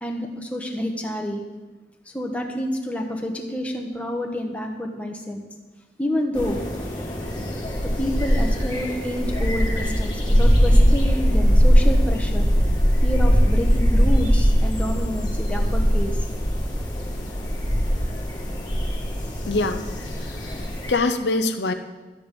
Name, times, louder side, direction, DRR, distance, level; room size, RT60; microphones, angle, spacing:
voice 1, 0.0-1.4 2.1-5.4 6.0-6.6 7.8-12.5 13.0-16.2, equal, 10° left, 1 dB, 1.2 m, -28 dB
sound 1, 6.3-20.9, equal, 25° left, 2.1 m, -21 dB
voice 2, 19.5-19.9 20.6-21.7, left 2 dB, 80° left, 8 dB, 0.7 m, -23 dB
12.5 x 9.7 x 5.3 m, 1.3 s
head